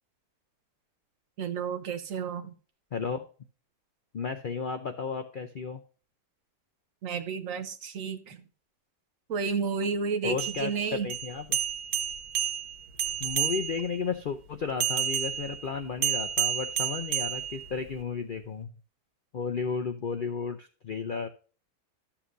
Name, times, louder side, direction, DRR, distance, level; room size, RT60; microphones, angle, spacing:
voice 1, 1.4-2.5 7.0-8.4 9.3-11.1, right 5 dB, 65° right, 9 dB, 1.1 m, -31 dB
voice 2, 2.9-3.2 4.1-5.8 10.2-10.7 11.0-11.5 13.2-18.7 19.3-21.3, left 5 dB, 60° left, 7 dB, 0.5 m, -33 dB
sound 1, 10.3-14.0 14.8-18.0, right 10 dB, 80° right, 1.2 m, -31 dB
12.5 x 7.2 x 2.6 m, 0.37 s
omnidirectional pair, 1.6 m